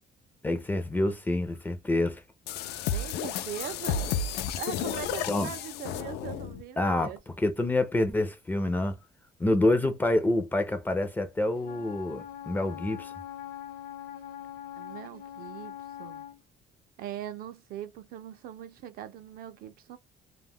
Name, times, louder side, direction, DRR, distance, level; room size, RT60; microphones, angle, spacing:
voice 1, 0.4-2.2 5.3-5.5 6.8-7.1 7.4-8.9 9.4-13.1, left 1 dB, 10° left, 0.4 m, -27 dB
sound 1, 2.5-6.6, left 7 dB, 80° left, 0.4 m, -32 dB
voice 2, 2.9-4.0 4.5-7.2 14.8-16.2 17.0-20.0, right 11 dB, 65° right, 0.5 m, -41 dB
Wind instrument woodwind instrument, 11.6-16.4, left 11 dB, 65° left, 0.8 m, -42 dB
2.2 x 2.1 x 3.4 m
cardioid pair, 150°, 17 cm